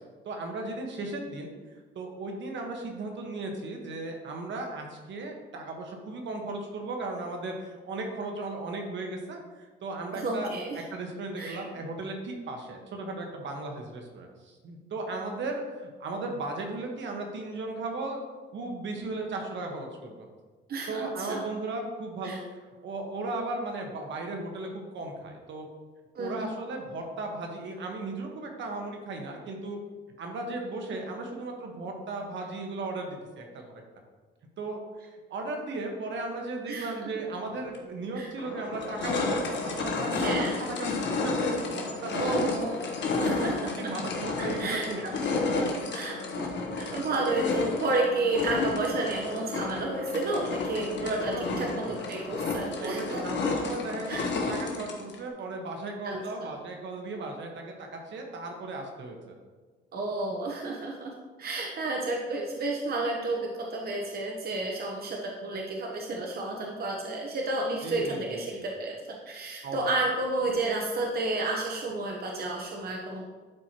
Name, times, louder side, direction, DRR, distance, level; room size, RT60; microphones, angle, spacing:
voice 1, 0.2-1.5 1.9-18.2 18.5-20.3 20.9-25.7 26.1-29.8 30.2-33.6 34.6-42.4 43.2-45.0 45.3-45.4 50.8-52.0 52.8-59.3 67.8-68.6 69.6-69.9, right 2 dB, 70° right, 2 dB, 1.4 m, -36 dB
voice 2, 10.1-10.8 11.4-11.6 20.7-21.4 22.2-22.4 26.2-26.5 36.7-37.2 38.1-38.3 40.1-40.6 42.1-43.9 44.4-45.1 45.9-46.5 46.7-53.2 54.1-54.3 56.0-56.5 59.9-61.1 61.4-73.2, right 2 dB, 50° right, -1 dB, 1.1 m, -31 dB
sound 1, 37.7-37.8 38.4-55.2, left 3 dB, 65° left, 1.3 m, -31 dB
11.5 x 4.6 x 3.0 m, 1.3 s
cardioid pair, 90°, 20 cm